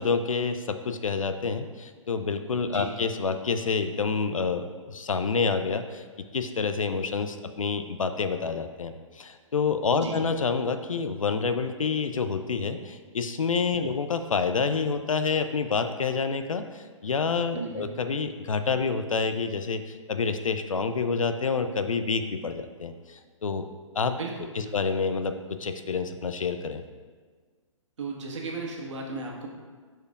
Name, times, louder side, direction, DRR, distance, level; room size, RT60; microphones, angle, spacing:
voice 1, 0.0-6.0 6.3-23.7 23.9-24.2 24.7-26.8, left 5 dB, 80° left, 9 dB, 0.5 m, -28 dB
voice 2, 9.9-10.2 13.8-13.9 17.5-17.9 24.2-24.7 28.0-29.5, right 3 dB, 65° right, -1 dB, 1.4 m, -35 dB
11.0 x 4.5 x 2.4 m, 1.5 s
figure-of-eight pair, 130°, 17 cm